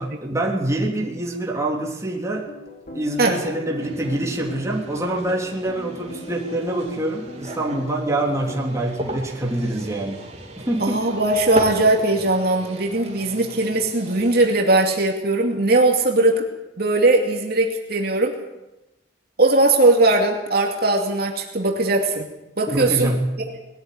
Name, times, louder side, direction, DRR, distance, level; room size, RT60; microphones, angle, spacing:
voice 1, 0.0-2.5 2.9-10.2 10.6-11.1 22.7-23.2, right 1 dB, 15° right, -2 dB, 3.4 m, -25 dB
sound 1, 2.3-8.6, left 1 dB, 45° left, 3.8 m, -39 dB
sound 2, 3.8-14.5, right 1 dB, 35° right, 3.6 m, -35 dB
voice 2, 10.8-16.4 16.8-18.3 19.4-22.3 22.6-23.1, right 2 dB, 55° right, 1 dB, 2.5 m, -19 dB
21.0 x 13.5 x 9.6 m, 0.96 s
head